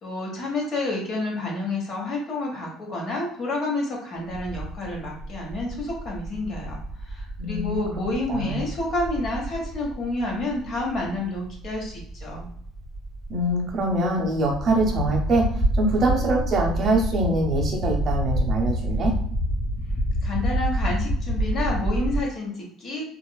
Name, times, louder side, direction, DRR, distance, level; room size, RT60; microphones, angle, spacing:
voice 1, 0.0-12.5 20.2-23.0, left 2 dB, 45° left, -2 dB, 0.9 m, -29 dB
sound 1, 4.3-22.2, right 1 dB, 15° left, 1.0 m, -28 dB
voice 2, 7.4-7.8 8.3-8.6 13.3-15.5 15.8-19.1, right 2 dB, 40° right, 0 dB, 0.6 m, -23 dB
2.9 x 2.3 x 2.2 m, 0.63 s
cardioid pair, 140°, 0 cm